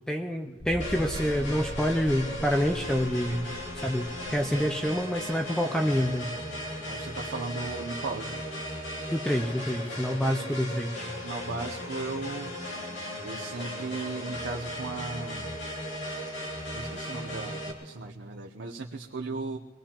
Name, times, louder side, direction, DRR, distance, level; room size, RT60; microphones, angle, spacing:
voice 1, 0.1-3.5 3.8-6.3 9.1-11.1, equal, 5° left, 3 dB, 0.5 m, -27 dB
sound 1, 0.6-6.0 6.3-6.4 6.9-7.0, equal, 45° left, 5.9 m, -42 dB
sound 2, 0.8-17.7, equal, 65° left, 2.7 m, -37 dB
voice 2, 6.9-8.4 10.4-10.8 11.2-12.5 13.2-15.5 16.7-19.6, right 3 dB, 65° right, 1 dB, 0.7 m, -36 dB
24.5 x 19.5 x 2.9 m, 1.4 s
head